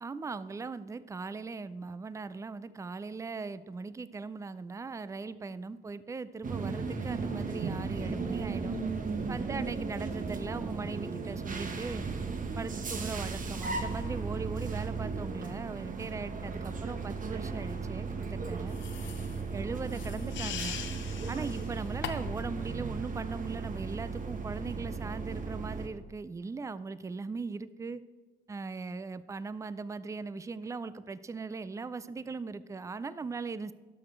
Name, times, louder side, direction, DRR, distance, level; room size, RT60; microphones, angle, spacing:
voice 1, 0.0-8.8 9.3-12.0 12.6-18.8 19.5-20.8 21.3-28.0 28.5-33.7, right 4 dB, 15° right, 15 dB, 0.4 m, -39 dB
sound 1, 6.4-25.9, right 4 dB, 40° right, 1.1 m, -36 dB
sound 2, 18.7-22.5, left 9 dB, 70° left, 0.8 m, -42 dB
12.5 x 6.0 x 4.5 m, 1.4 s
cardioid pair, 90°, 20 cm